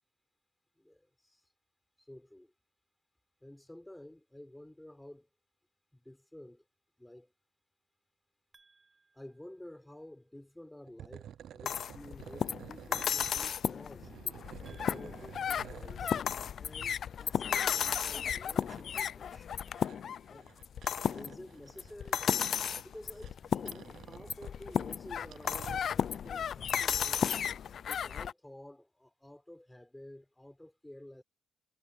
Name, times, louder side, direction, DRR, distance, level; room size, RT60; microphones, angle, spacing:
voice 1, 0.8-1.4 2.0-2.5 3.4-5.3 5.9-6.6 7.0-7.3 9.1-16.1 16.6-19.6 20.3-20.5 21.1-22.3 22.8-27.4 27.8-31.2, left 1 dB, 5° left, 4.5 m, -51 dB
sound 1, 8.5-10.2 14.6-16.7 19.6-21.2 24.1-25.3, right 4 dB, 30° right, 6.7 m, -69 dB
sound 2, 10.9-13.4 13.8-16.3 17.6-26.8, right 10 dB, 70° right, 0.5 m, -52 dB
sound 3, 11.7-28.3, left 8 dB, 60° left, 0.3 m, -34 dB
cardioid pair, 90°, 0 cm